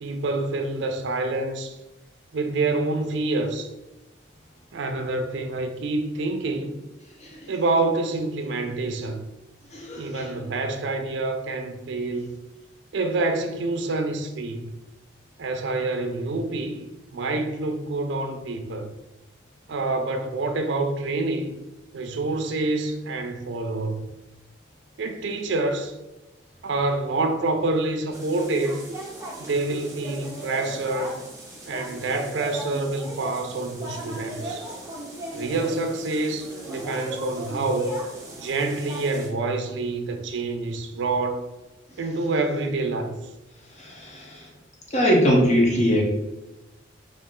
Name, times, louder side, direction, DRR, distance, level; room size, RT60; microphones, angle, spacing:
voice 1, 0.0-1.8 2.3-3.7 4.7-6.8 7.5-9.2 9.9-12.3 12.9-14.7 15.4-16.8 17.1-18.9 19.7-21.5 21.9-24.0 25.0-25.9 26.6-28.8 29.4-31.2 31.7-34.7 35.3-38.0 38.4-41.4 42.0-43.2, right 2 dB, 70° right, 0.4 m, -27 dB
voice 2, 9.7-10.3 43.8-44.4 44.9-46.0, equal, 35° left, 0.6 m, -21 dB
sound 1, 28.1-39.3, right 1 dB, 15° right, 0.6 m, -37 dB
3.0 x 2.5 x 3.6 m
head